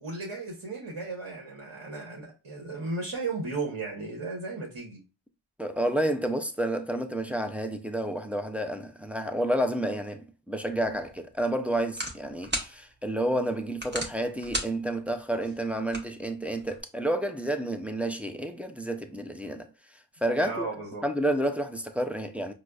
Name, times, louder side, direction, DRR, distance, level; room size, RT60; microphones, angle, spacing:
voice 1, 0.0-5.0 20.4-21.0, right 3 dB, 65° right, 1.0 m, -35 dB
voice 2, 5.6-19.7 20.2-20.7 21.0-22.5, right 1 dB, 5° right, 0.3 m, -30 dB
sound 1, 10.7-16.8, right 1 dB, 20° right, 0.8 m, -39 dB
4.8 x 2.0 x 2.2 m
wide cardioid pair, 45°, 49 cm